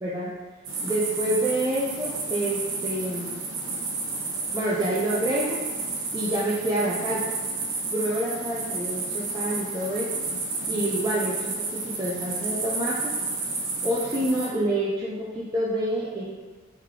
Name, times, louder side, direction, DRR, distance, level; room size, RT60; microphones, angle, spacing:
voice 1, 0.0-0.3 0.8-3.4 4.5-5.6 6.1-7.3 7.9-10.1 10.7-13.1 13.8-16.2, right 1 dB, 20° right, -7 dB, 0.4 m, -27 dB
sound 1, 0.7-14.5, right 3 dB, 60° right, 0.7 m, -31 dB
3.3 x 3.0 x 3.6 m, 1.4 s
head